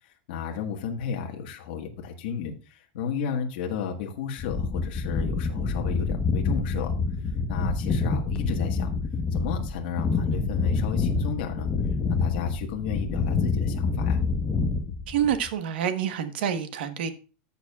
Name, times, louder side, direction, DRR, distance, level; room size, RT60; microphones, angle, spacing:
voice 1, 0.0-6.9 7.5-8.9 9.3-11.7 12.1-14.2, left 6 dB, 65° left, 1.6 m, -33 dB
sound 1, 4.4-15.5, left 4 dB, 20° left, 1.2 m, -27 dB
voice 2, 15.1-17.1, right 9 dB, 80° right, 1.3 m, -27 dB
14.0 x 7.2 x 2.4 m
supercardioid pair, 165°, 5 cm